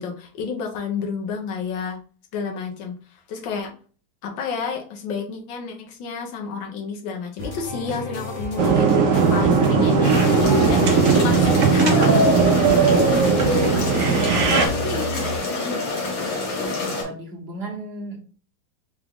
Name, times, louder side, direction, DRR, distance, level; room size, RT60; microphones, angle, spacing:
voice 1, 0.0-2.0 2.3-3.7 4.2-9.0 9.3-12.4 13.9-14.1 14.5-15.8, left 5 dB, 75° left, 2 dB, 1.5 m, -30 dB
sound 1, 7.4-15.4, equal, 50° left, 1.6 m, -31 dB
sound 2, 8.6-14.7, right 5 dB, 70° right, 0.7 m, -18 dB
sound 3, 10.0-17.0, left 3 dB, 90° left, 2.1 m, -27 dB
voice 2, 14.1-14.5 16.7-18.2, right 2 dB, 40° right, -1 dB, 0.9 m, -34 dB
4.9 x 2.4 x 3.6 m, 0.41 s
omnidirectional pair, 2.1 m